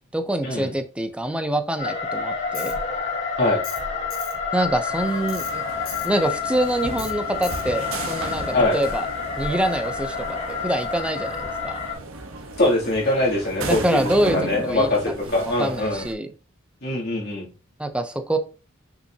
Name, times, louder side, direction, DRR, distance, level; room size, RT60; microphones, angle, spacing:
voice 1, 0.1-2.7 4.5-5.6 6.0-9.1 9.4-11.8 13.6-15.0 15.4-16.3 17.8-18.4, right 1 dB, 5° right, 7 dB, 0.6 m, -25 dB
sound 1, 1.8-11.9, left 5 dB, 35° left, 2.9 m, -29 dB
Tools, 2.5-2.7 3.6-3.8 4.1-4.3 5.3-5.5 5.8-6.1 7.0-7.1 7.4-7.6, left 7 dB, 70° left, 3.2 m, -36 dB
sound 2, 4.9-16.1, right 2 dB, 80° right, 1.1 m, -36 dB
voice 2, 12.6-16.1 16.8-17.5, left 2 dB, 50° left, -4 dB, 2.8 m, -22 dB
6.4 x 5.6 x 2.8 m, 0.34 s
head